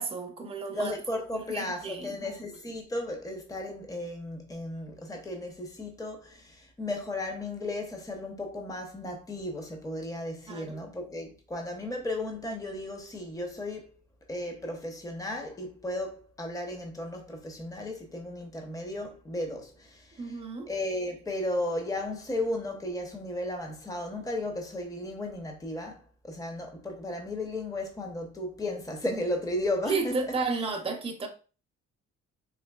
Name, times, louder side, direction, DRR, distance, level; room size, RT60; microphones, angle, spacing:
voice 1, 0.0-1.0 1.3-2.3 10.5-10.9 20.2-20.7 29.9-31.3, right 4 dB, 20° right, 0.7 m, -33 dB
voice 2, 0.7-13.9 14.3-20.4 20.7-26.0 26.2-30.2, left 1 dB, 10° left, 0.8 m, -35 dB
3.8 x 2.9 x 2.3 m
cardioid pair, 90°, 30 cm